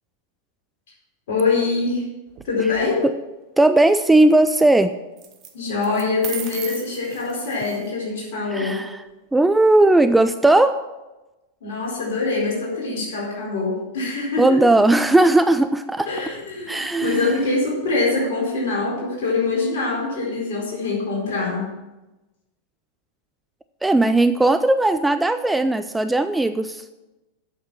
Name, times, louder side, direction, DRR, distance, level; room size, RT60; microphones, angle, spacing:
voice 1, 1.3-2.0 2.4-3.0 5.5-8.8 11.6-14.7 16.1-21.7, left 3 dB, 55° left, -3 dB, 4.4 m, -24 dB
sound 1, 2.3-2.8 5.2-5.5 5.8-7.9, right 9 dB, 35° right, 1.2 m, -36 dB
voice 2, 3.6-5.0 8.5-8.9 9.3-10.8 14.4-16.1 16.7-17.3 23.8-26.8, right 2 dB, 5° right, 10 dB, 0.4 m, -17 dB
8.5 x 6.6 x 7.1 m, 1.1 s
figure-of-eight pair, 90°, 0 cm